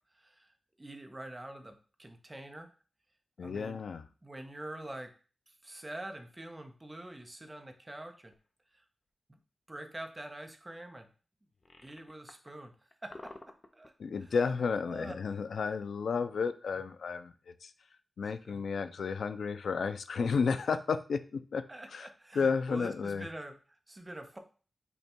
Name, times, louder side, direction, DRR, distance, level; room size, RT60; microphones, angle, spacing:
voice 1, 0.1-2.7 3.4-3.8 4.2-5.1 5.5-8.3 8.7-8.8 9.3-9.4 9.7-11.1 11.8-13.1 13.7-13.9 14.2-14.4 14.8-15.2 18.4-18.6 21.7-24.4, right 1 dB, 15° right, 5 dB, 0.6 m, -45 dB
voice 2, 3.4-4.0 14.0-17.3 17.6-17.7 18.2-21.6 21.9-22.1 22.4-23.3, left 5 dB, 90° left, 11 dB, 0.3 m, -32 dB
sound 1, 8.3-8.5 11.5-12.5 12.9-13.9, left 2 dB, 30° left, 0.5 m, -50 dB
5.4 x 2.2 x 4.3 m, 0.37 s
wide cardioid pair, 165°, 0 cm